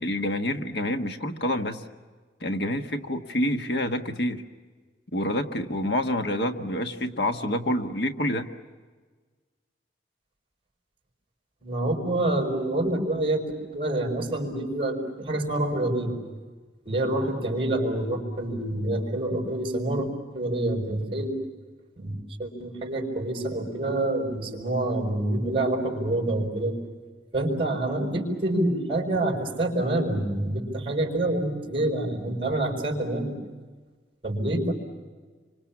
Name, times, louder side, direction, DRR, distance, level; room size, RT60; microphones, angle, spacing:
voice 1, 0.0-1.9 2.4-4.4 5.1-8.5, left 1 dB, 65° left, 5 dB, 1.5 m, -27 dB
voice 2, 11.6-13.5 13.7-16.2 16.9-20.1 20.3-21.4 22.0-26.8 27.3-33.4 34.2-34.7, right 1 dB, 30° right, 3 dB, 5.4 m, -27 dB
28.5 x 25.5 x 7.3 m, 1.4 s
head